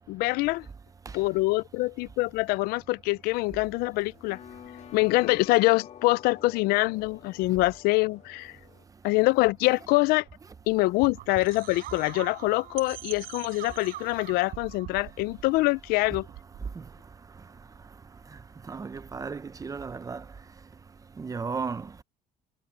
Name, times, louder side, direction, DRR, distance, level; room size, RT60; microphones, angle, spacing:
voice 1, 0.1-0.7 1.1-4.4 4.9-8.5 9.0-10.2 10.7-16.3, left 21 dB, 85° left, 0.5 m, -25 dB
sound 1, 3.6-8.9, left 9 dB, 50° left, 2.0 m, -48 dB
sound 2, 10.3-17.0, right 15 dB, 70° right, 5.8 m, -43 dB
voice 2, 18.7-20.2 21.2-21.9, right 5 dB, 20° right, 0.7 m, -34 dB
cardioid pair, 105°, 15 cm